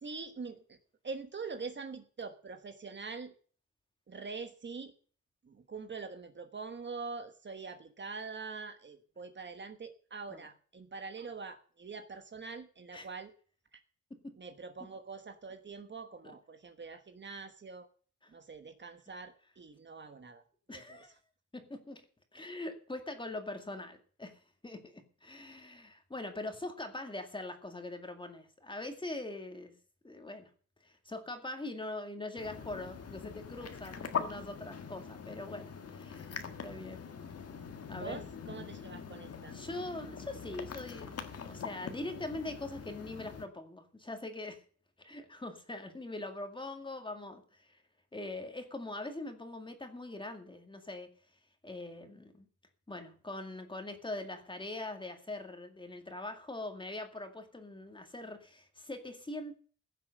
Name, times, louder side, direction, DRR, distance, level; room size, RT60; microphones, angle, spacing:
voice 1, 0.0-0.8 1.0-3.3 4.1-4.9 5.4-13.3 13.7-13.8 14.4-17.9 18.3-20.4 20.7-21.1 37.9-39.5, right 4 dB, 40° right, 8 dB, 1.3 m, -44 dB
voice 2, 20.7-21.2 21.5-22.0 22.3-29.7 30.0-30.5 30.8-37.1 37.9-38.2 39.5-41.2 41.4-44.6 45.0-47.8 48.1-51.1 51.6-52.5 52.9-59.6, left 2 dB, 15° left, 5 dB, 2.2 m, -42 dB
sound 1, 32.4-43.5, left 6 dB, 55° left, 1.7 m, -43 dB
16.0 x 7.5 x 6.6 m, 0.43 s
wide cardioid pair, 150°, 30 cm